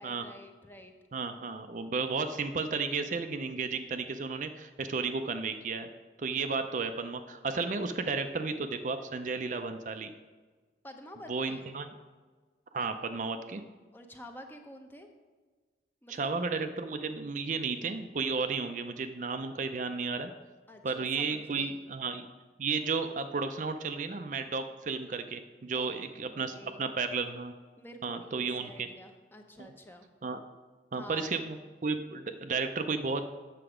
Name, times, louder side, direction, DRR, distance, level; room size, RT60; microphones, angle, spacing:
voice 1, 0.0-1.0 6.4-6.5 10.8-11.7 13.9-15.1 16.0-16.3 20.7-21.8 25.7-26.9 27.8-30.1 30.9-31.4, equal, 10° left, 4 dB, 0.7 m, -49 dB
voice 2, 1.1-5.9 6.2-10.1 11.3-11.9 12.7-13.6 16.1-20.3 20.8-22.3 22.6-27.5 28.0-28.9 29.6-29.7 30.2-30.4 30.9-33.3, right 4 dB, 45° right, 8 dB, 0.4 m, -33 dB
7.9 x 6.7 x 4.9 m, 1.4 s
head